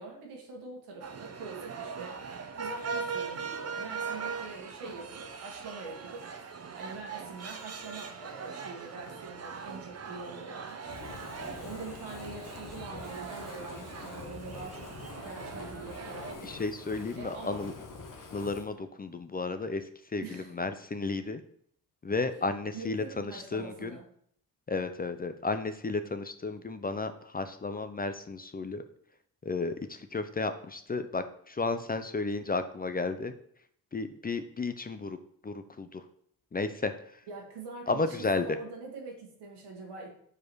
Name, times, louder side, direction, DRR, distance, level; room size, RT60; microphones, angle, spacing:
voice 1, 0.0-2.2 2.5-6.3 6.8-14.9 15.2-16.6 17.2-17.6 20.2-20.5 22.3-24.0 37.3-40.1, right 4 dB, 80° right, 0 dB, 1.9 m, -44 dB
sound 1, 1.0-16.3, right 5 dB, 40° right, 0.8 m, -40 dB
Fire, 10.8-18.7, left 4 dB, 50° left, 1.3 m, -45 dB
voice 2, 16.4-17.7 18.3-19.8 20.1-21.4 22.0-24.0 24.7-28.8 29.4-33.3 33.9-35.2 35.4-36.0 36.5-36.9 37.9-38.4, left 3 dB, 25° left, 10 dB, 0.5 m, -33 dB
4.9 x 4.7 x 4.6 m, 0.64 s
supercardioid pair, 65°, 39 cm